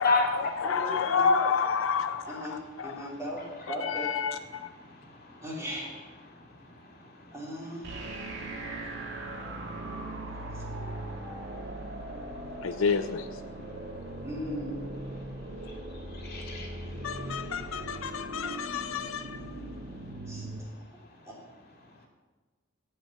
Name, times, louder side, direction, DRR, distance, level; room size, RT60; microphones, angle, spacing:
voice 1, 0.0-3.1 3.7-4.7 12.6-13.3 17.0-19.5, left 6 dB, 70° left, 10 dB, 0.5 m, -29 dB
voice 2, 0.6-1.3 2.2-4.1 5.4-6.0 7.3-8.1 10.3-10.6 14.2-14.7 20.3-20.7 21.2-21.3, equal, 15° right, -4 dB, 3.4 m, -38 dB
voice 3, 4.8-5.4 7.1-7.3 7.9-8.2 8.9-9.0 9.5-11.5 11.7-11.9 15.6-15.7 16.1-17.5, left 3 dB, 50° left, 1 dB, 2.7 m, -35 dB
sound 1, 7.8-20.6, right 1 dB, 65° right, 2.1 m, -39 dB
16.5 x 5.7 x 7.3 m, 1.2 s
head